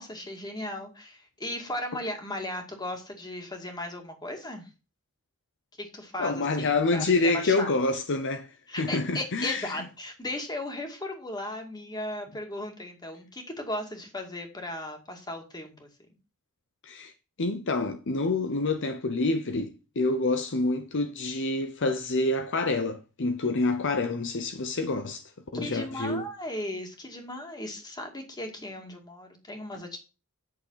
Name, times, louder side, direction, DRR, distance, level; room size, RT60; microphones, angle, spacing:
voice 1, 0.0-4.7 5.8-7.7 8.7-15.9 25.5-30.0, left 1 dB, 20° left, 2.2 m, -36 dB
voice 2, 6.2-8.5 8.8-9.8 16.8-17.1 17.4-26.3, left 3 dB, 55° left, 0.8 m, -27 dB
8.5 x 6.4 x 5.7 m
head